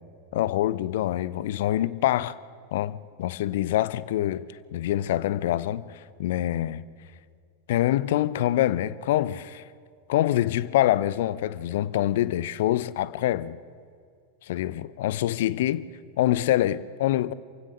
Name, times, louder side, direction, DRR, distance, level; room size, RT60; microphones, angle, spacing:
voice 1, 0.3-2.4 2.7-4.5 4.7-6.8 7.7-9.6 10.1-13.6 14.4-15.9 16.2-17.3, left 13 dB, 55° left, 0.6 m, -25 dB
27.0 x 16.0 x 6.5 m
figure-of-eight pair, 90°, 0 cm